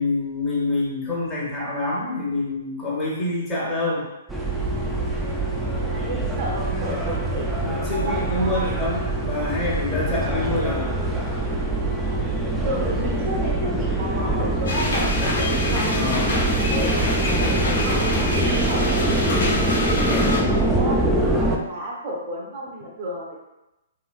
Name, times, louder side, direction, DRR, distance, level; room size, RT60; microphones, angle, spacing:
voice 1, 0.0-4.0 7.6-10.9 15.9-16.3 20.0-20.4, left 2 dB, 25° left, -7 dB, 1.2 m, -26 dB
sound 1, 4.3-21.6, right 1 dB, 5° right, 0.4 m, -24 dB
voice 2, 5.5-8.9 12.0-12.2 12.6-15.1 15.7-23.4, right 1 dB, 45° right, -3 dB, 0.7 m, -33 dB
sound 2, 14.7-20.4, left 2 dB, 75° left, 1.0 m, -27 dB
3.0 x 2.6 x 2.3 m, 0.96 s
hypercardioid pair, 125°, 0 cm